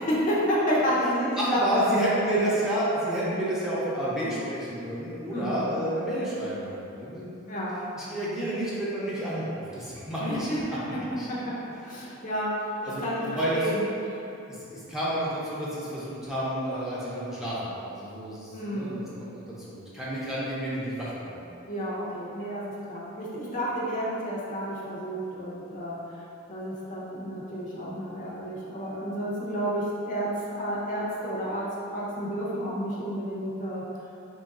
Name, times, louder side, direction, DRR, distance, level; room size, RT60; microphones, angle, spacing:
voice 1, 0.0-2.5 5.3-5.7 7.5-7.8 10.2-11.0 11.3-14.5 18.5-19.0 21.7-26.2 26.5-31.7 31.9-33.8, equal, 40° left, -7 dB, 0.6 m, -30 dB
voice 2, 1.5-7.5 7.9-11.3 12.9-13.6 14.5-14.6 14.9-19.4 19.7-21.4, right 1 dB, ahead, -10 dB, 0.6 m, -30 dB
3.0 x 2.4 x 4.0 m, 2.8 s
head